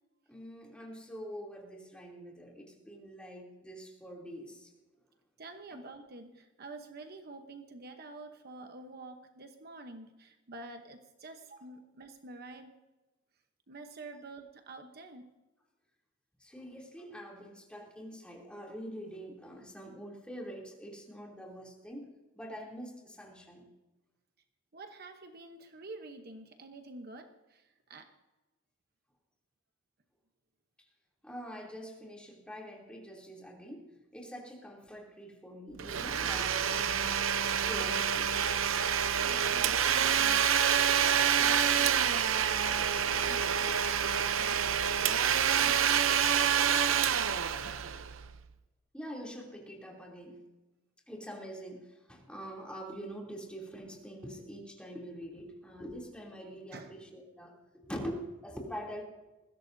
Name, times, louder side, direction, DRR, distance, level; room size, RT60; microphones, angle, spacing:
voice 1, 0.3-4.7 5.7-5.8 14.1-14.2 16.4-23.6 30.8-30.9 31.2-38.3 47.0-47.1 48.9-50.4 51.1-59.0, equal, 5° left, -2 dB, 3.0 m, -45 dB
voice 2, 5.4-12.7 13.7-15.3 24.7-28.1 39.1-40.5 40.9-47.3 47.6-47.9 56.7-56.9, right 2 dB, 50° right, 6 dB, 1.0 m, -48 dB
Domestic sounds home sounds, 35.8-48.4, right 8 dB, 85° right, 0.7 m, -27 dB
20.5 x 16.0 x 2.7 m, 1.1 s
head